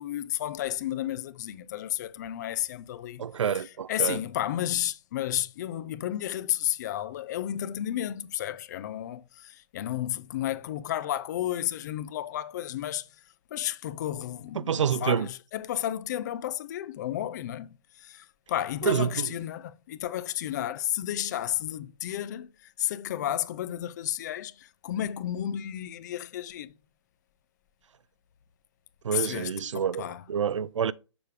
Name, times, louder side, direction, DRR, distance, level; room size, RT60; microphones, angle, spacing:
voice 1, 0.0-3.2 3.9-13.1 13.5-26.7 29.1-30.2, left 12 dB, 35° left, 0.4 m, -32 dB
voice 2, 3.2-4.2 14.5-15.3 18.8-19.3 29.0-30.9, right 8 dB, 85° right, 0.4 m, -28 dB
6.8 x 3.5 x 4.7 m
hypercardioid pair, 145°, 15 cm